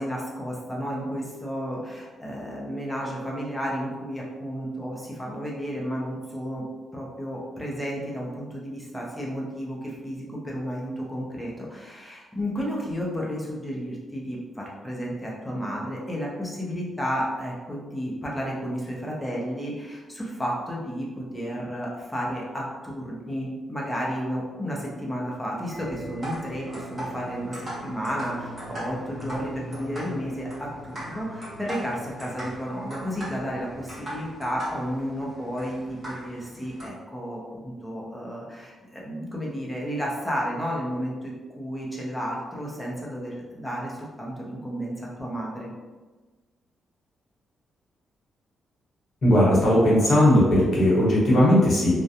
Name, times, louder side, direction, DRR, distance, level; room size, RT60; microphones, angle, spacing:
voice 1, 0.0-6.7 6.9-45.7, equal, 5° left, -4 dB, 0.6 m, -32 dB
sound 1, 25.7-36.9, right 1 dB, 30° right, 1.1 m, -39 dB
voice 2, 49.2-52.0, left 1 dB, 45° left, -6 dB, 0.9 m, -18 dB
2.4 x 2.1 x 2.7 m, 1.3 s
cardioid pair, 140°, 0 cm